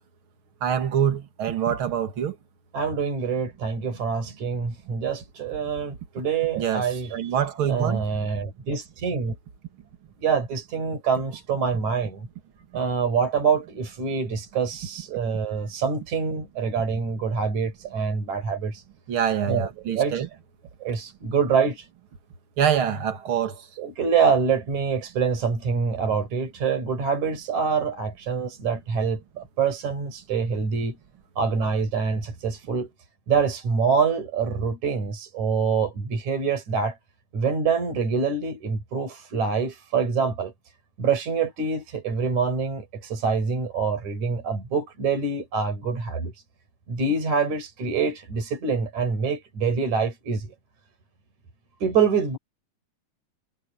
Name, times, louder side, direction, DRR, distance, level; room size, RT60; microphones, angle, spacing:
voice 1, 0.6-2.4 6.6-8.0 19.1-20.3 22.6-23.6, right 8 dB, 45° right, 2.4 m, -25 dB
voice 2, 2.7-7.3 7.7-9.3 10.2-12.3 12.7-18.8 19.5-19.7 19.9-20.3 20.8-21.9 23.8-30.9 31.4-32.9 33.3-37.0 37.3-40.5 41.0-46.3 46.9-50.5 51.8-52.4, right 5 dB, 60° right, 6.3 m, -25 dB
omnidirectional pair, 3.7 m